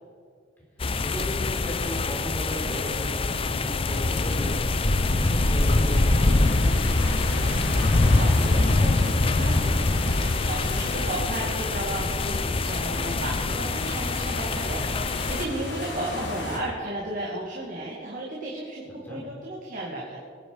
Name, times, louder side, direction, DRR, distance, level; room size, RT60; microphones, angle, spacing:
sound 1, 0.8-15.5, left 3 dB, 30° left, 0.5 m, -24 dB
voice 1, 0.9-7.6 10.9-11.3 19.0-19.2, equal, 10° left, -3 dB, 3.7 m, -36 dB
sound 2, 4.0-16.6, left 1 dB, 85° left, 3.0 m, -31 dB
voice 2, 8.1-20.2, right 1 dB, 45° right, -3 dB, 2.2 m, -34 dB
22.0 x 10.0 x 4.8 m, 2.2 s
head